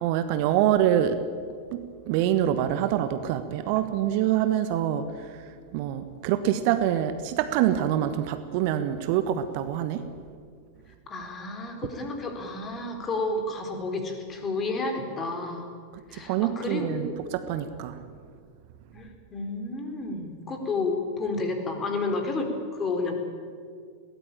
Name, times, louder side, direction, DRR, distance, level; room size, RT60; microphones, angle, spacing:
voice 1, 0.0-1.2 1.7-10.1 16.1-18.0, right 11 dB, 45° right, 11 dB, 1.3 m, -26 dB
voice 2, 11.1-15.7 16.1-17.2 18.9-23.1, left 3 dB, 25° left, 5 dB, 4.3 m, -31 dB
22.0 x 18.0 x 8.9 m, 2.1 s
figure-of-eight pair, 90°, 0 cm